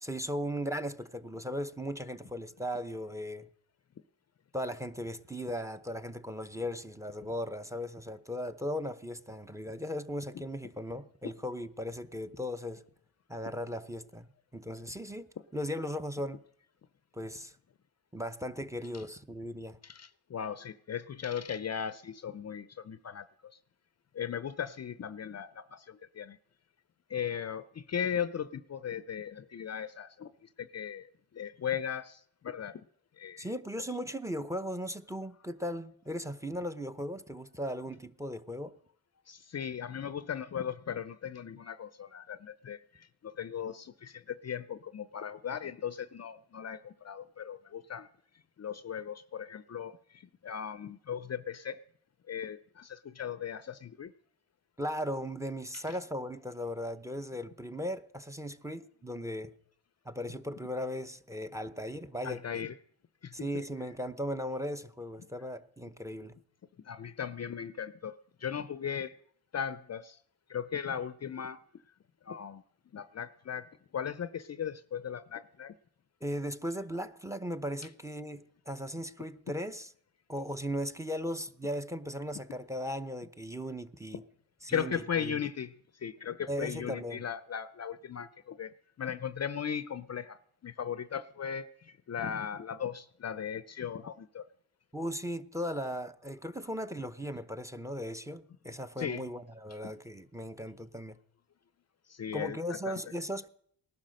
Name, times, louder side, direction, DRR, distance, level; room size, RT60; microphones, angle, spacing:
voice 1, 0.0-3.5 4.5-12.8 13.3-15.3 15.5-16.4 17.1-17.5 18.1-19.8 33.4-38.7 54.8-59.5 60.0-62.6 63.3-66.4 76.2-79.9 80.3-84.2 84.6-84.9 85.2-85.4 86.5-87.2 94.9-101.2 102.3-103.5, equal, 5° right, 0.8 m, -37 dB
voice 2, 19.8-23.6 24.1-26.4 27.1-32.8 33.2-33.5 39.3-48.1 48.6-51.8 52.3-54.1 55.7-56.0 62.2-62.8 63.2-63.6 66.8-69.2 69.5-70.2 70.5-71.6 72.2-72.6 72.9-75.8 84.7-94.5 99.0-99.2 99.8-99.9 102.1-102.9, left 8 dB, 40° left, 0.6 m, -38 dB
18.5 x 11.5 x 6.4 m
cardioid pair, 85°, 41 cm